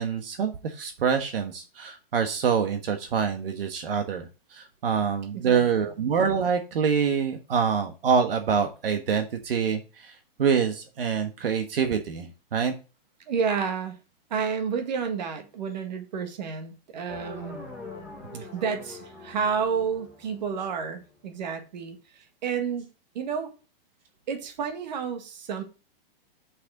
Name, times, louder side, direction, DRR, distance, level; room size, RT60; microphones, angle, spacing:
voice 1, 0.0-12.7 18.3-18.4, right 6 dB, 75° right, 1.4 m, -26 dB
voice 2, 5.3-5.9 13.3-14.0 14.3-17.6 18.4-22.9 23.1-23.5 24.3-25.6, right 6 dB, 50° right, 1.8 m, -30 dB
sound 1, 17.1-21.1, left 2 dB, 5° right, 1.4 m, -43 dB
6.5 x 6.5 x 4.8 m
hypercardioid pair, 175°, 29 cm